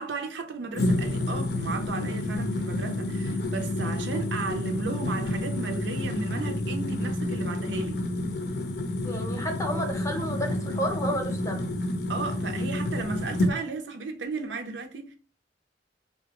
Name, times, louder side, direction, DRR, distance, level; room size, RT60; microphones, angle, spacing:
voice 1, 0.0-8.0 12.1-15.2, right 4 dB, 75° right, 0.6 m, -34 dB
sound 1, 0.7-13.5, left 1 dB, 65° left, 0.5 m, -29 dB
voice 2, 9.0-11.8, equal, 20° left, 0.7 m, -31 dB
3.6 x 2.2 x 2.9 m
head